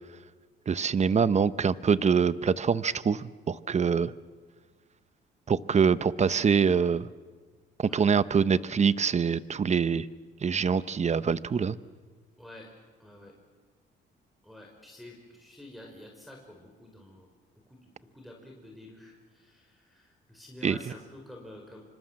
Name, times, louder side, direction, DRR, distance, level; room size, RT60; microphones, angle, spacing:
voice 1, 0.7-4.1 5.5-7.1 7.8-10.1 10.4-11.8 20.6-20.8, right 6 dB, 35° right, 16 dB, 0.9 m, -25 dB
voice 2, 13.0-13.3 14.4-17.3 17.7-21.8, left 1 dB, ahead, -1 dB, 5.3 m, -49 dB
26.5 x 25.5 x 7.6 m, 1.5 s
cardioid pair, 90°, 20 cm